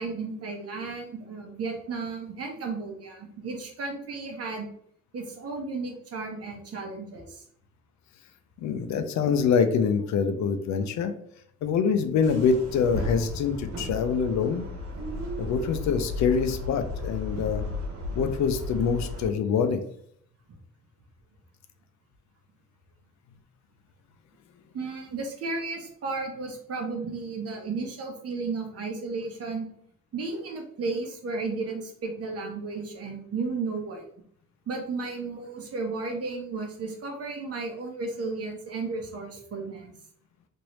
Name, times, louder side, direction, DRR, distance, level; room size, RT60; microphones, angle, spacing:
voice 1, 0.0-4.7 5.1-7.4 24.7-29.7 30.1-34.0 34.7-39.9, right 3 dB, 50° right, 2 dB, 0.9 m, -34 dB
voice 2, 8.6-11.1 11.6-14.7 15.4-17.6 18.1-19.8, left 6 dB, 65° left, 8 dB, 0.5 m, -25 dB
sound 1, 12.2-19.3, left 2 dB, 85° right, 1.1 m, -34 dB
3.1 x 2.6 x 3.0 m, 0.66 s
cardioid pair, 90°, 30 cm